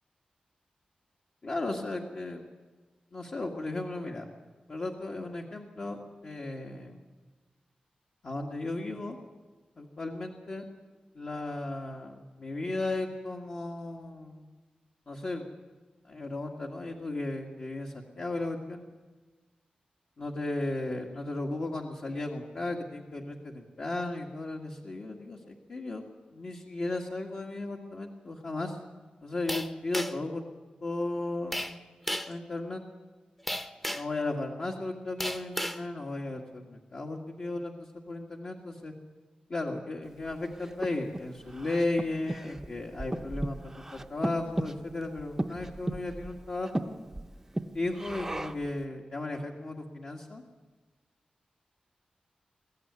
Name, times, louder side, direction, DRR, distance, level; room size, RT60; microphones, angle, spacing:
voice 1, 1.4-2.4 3.1-4.3 4.7-6.0 6.2-7.0 8.2-9.2 9.8-10.6 11.2-14.4 15.1-15.4 16.1-18.8 20.2-26.0 26.3-28.8 29.2-30.4 30.8-31.7 32.3-32.8 33.9-38.9 39.5-46.9 47.7-50.4, left 2 dB, 50° left, 0 dB, 1.9 m, -35 dB
sound 1, 29.5-30.3 31.5-31.8 32.1-32.4 33.5-34.2 35.2-35.8, equal, 10° left, 1.0 m, -34 dB
Breathing, 40.2-48.7, right 1 dB, 15° right, 0.7 m, -37 dB
23.0 x 14.5 x 9.6 m, 1.3 s
wide cardioid pair, 125°, 3 cm